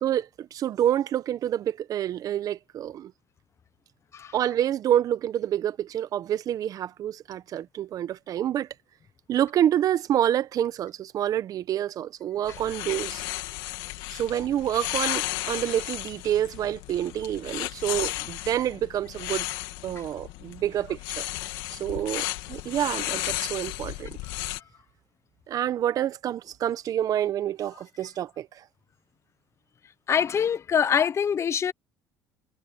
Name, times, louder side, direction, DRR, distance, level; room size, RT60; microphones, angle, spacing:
voice 1, 0.0-3.1 4.3-8.7 9.3-13.3 14.1-19.5 19.8-21.3 21.7-24.2 25.5-28.6, right 11 dB, 55° right, 1.0 m, -27 dB
sound 1, 12.5-24.6, left 19 dB, 80° left, 2.2 m, -34 dB
voice 2, 30.1-31.7, left 7 dB, 40° left, 0.9 m, -25 dB
supercardioid pair, 85°, 7 cm